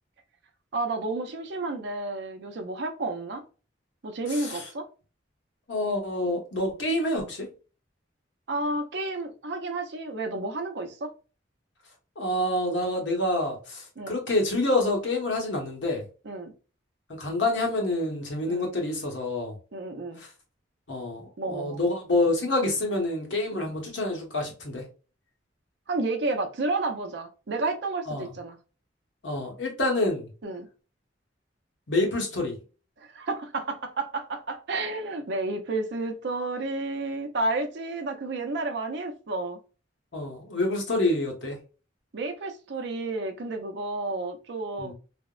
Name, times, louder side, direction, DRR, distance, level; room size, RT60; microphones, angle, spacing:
voice 1, 0.7-3.4 4.0-4.9 8.5-11.1 14.0-14.2 16.2-16.5 18.5-18.7 19.7-20.2 21.4-21.8 23.5-23.7 25.9-28.6 30.4-30.7 33.1-39.6 42.1-44.9, right 2 dB, 65° right, 0.5 m, -31 dB
voice 2, 5.7-7.5 12.2-16.0 17.1-19.5 20.2-20.3 20.9-24.8 28.1-28.3 29.2-30.3 31.9-32.6 40.1-41.6 44.8-44.9, left 2 dB, 70° left, 1.0 m, -27 dB
3.4 x 2.0 x 2.3 m
head